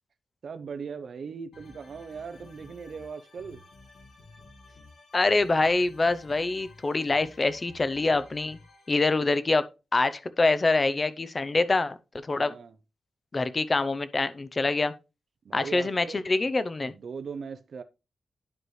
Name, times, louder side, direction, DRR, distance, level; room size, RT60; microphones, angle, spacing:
voice 1, 0.4-3.6 12.3-12.7 15.4-16.5 16.8-17.8, right 5 dB, 65° right, 0.6 m, -39 dB
sound 1, 1.5-8.9, left 2 dB, 80° left, 2.1 m, -52 dB
voice 2, 5.1-8.6 8.9-9.6 9.9-12.0 12.2-12.5 13.3-14.9 15.5-16.9, left 3 dB, 30° left, 0.6 m, -25 dB
10.5 x 4.7 x 3.2 m
wide cardioid pair, 105°, 0 cm